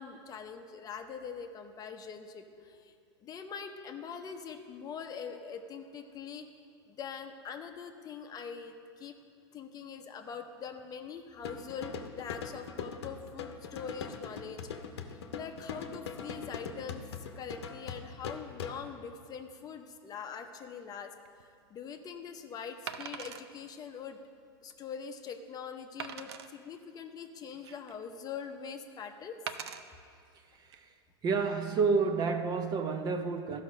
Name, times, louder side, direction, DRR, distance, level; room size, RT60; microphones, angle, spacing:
voice 1, 0.0-2.9 3.2-6.5 6.9-9.1 9.5-14.6 15.1-17.0 17.3-21.1 21.7-24.2 24.6-29.4, left 6 dB, 30° left, 5 dB, 0.7 m, -43 dB
sound 1, 11.4-19.0, left 6 dB, 85° left, 0.8 m, -42 dB
Wood, 21.3-21.4 22.9-23.5 24.1-24.2 24.7-24.8 26.0-26.5 27.3-28.0 29.5-29.8 30.6-30.8, right 8 dB, 80° right, 0.6 m, -41 dB
voice 2, 30.5-30.9 31.2-33.6, right 4 dB, 30° right, 7 dB, 0.7 m, -30 dB
13.0 x 5.7 x 6.3 m, 2.4 s
hypercardioid pair, 115°, 14 cm